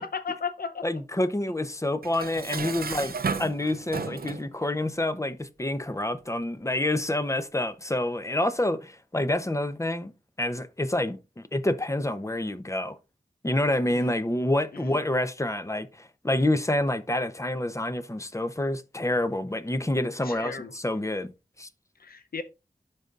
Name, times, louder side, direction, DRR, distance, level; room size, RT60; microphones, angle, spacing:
voice 1, 0.0-0.8 2.9-3.0 13.9-14.1 14.7-15.0 20.2-20.7 22.0-22.4, left 5 dB, 85° left, 0.7 m, -35 dB
voice 2, 0.8-3.1 3.4-10.1 10.4-13.0 13.4-21.3 21.6-21.7, left 1 dB, 20° left, 0.7 m, -28 dB
Dishes pots and pans, 2.0-4.5, right 5 dB, 90° right, 0.5 m, -33 dB
12.0 x 4.0 x 2.5 m
wide cardioid pair, 50°, 15 cm